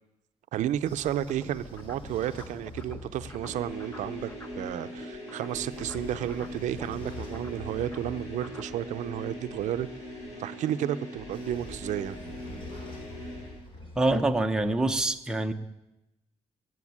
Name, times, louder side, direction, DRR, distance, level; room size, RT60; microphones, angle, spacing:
voice 1, 0.5-4.3 4.6-9.9 10.4-12.2, right 12 dB, 85° right, 13 dB, 0.5 m, -32 dB
Train / Sliding door, 0.6-4.6 5.5-10.3 11.1-15.0, left 2 dB, 45° left, 3.0 m, -46 dB
sound 1, 1.0-4.7 5.0-8.7, left 2 dB, 20° left, 1.0 m, -47 dB
sound 2, 3.3-13.6, equal, 65° left, 6.8 m, -41 dB
voice 2, 14.0-15.5, right 2 dB, 5° right, 5 dB, 0.7 m, -25 dB
14.5 x 7.8 x 9.5 m, 0.94 s
cardioid pair, 175°, 12 cm